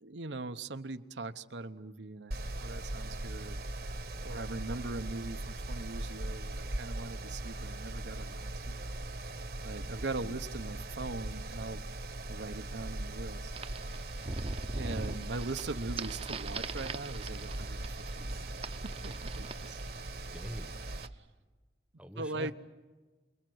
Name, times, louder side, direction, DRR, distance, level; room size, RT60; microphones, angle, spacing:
voice 1, 0.0-3.6 4.2-8.8 9.6-11.8 12.3-13.5 14.7-18.4 19.0-19.8 22.2-22.5, right 2 dB, 80° right, 9 dB, 0.9 m, -41 dB
Mechanical fan, 2.3-21.1, right 1 dB, 55° right, 1.2 m, -40 dB
sound 1, 13.5-21.1, right 3 dB, 35° right, 0.8 m, -42 dB
voice 2, 20.1-20.8 22.0-22.5, equal, 5° right, 9 dB, 1.0 m, -45 dB
28.5 x 21.0 x 7.9 m, 1.3 s
head